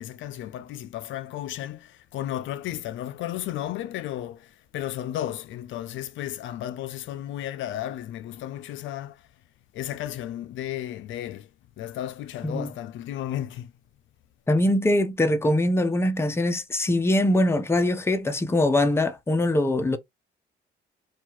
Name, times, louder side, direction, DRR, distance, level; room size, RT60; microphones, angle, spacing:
voice 1, 0.0-9.2 9.7-11.5 11.8-13.7, left 12 dB, 75° left, 0.4 m, -34 dB
voice 2, 14.5-20.0, left 1 dB, 10° left, 0.5 m, -22 dB
2.7 x 2.3 x 2.9 m
cardioid pair, 90°, 20 cm